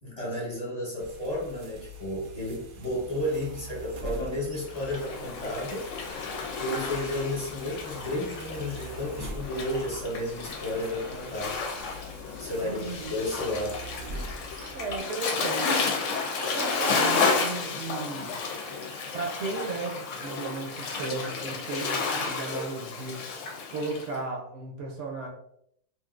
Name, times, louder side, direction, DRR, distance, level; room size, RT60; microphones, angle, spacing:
voice 1, 0.0-5.9 6.6-11.6 12.4-13.8, left 1 dB, 30° left, -6 dB, 1.0 m, -32 dB
sound 1, 1.0-15.0, equal, 85° right, 1.1 m, -44 dB
Waves surf, 4.6-24.1, left 4 dB, 70° left, 0.9 m, -32 dB
voice 2, 12.6-13.2 14.7-16.0 16.4-18.4 19.1-23.2 23.7-25.3, right 3 dB, 65° right, -1 dB, 0.9 m, -35 dB
3.1 x 2.6 x 2.4 m, 0.72 s
omnidirectional pair, 1.4 m